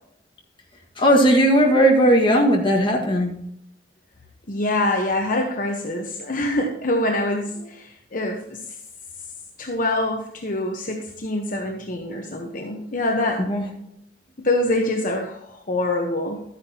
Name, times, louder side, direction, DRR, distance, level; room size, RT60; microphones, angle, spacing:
voice 1, 1.0-3.4 13.4-13.6, equal, 30° left, -1 dB, 1.8 m, -17 dB
voice 2, 4.5-8.6 9.6-13.4 14.4-16.4, left 1 dB, 50° left, 1 dB, 1.1 m, -25 dB
13.0 x 9.5 x 2.9 m, 0.76 s
head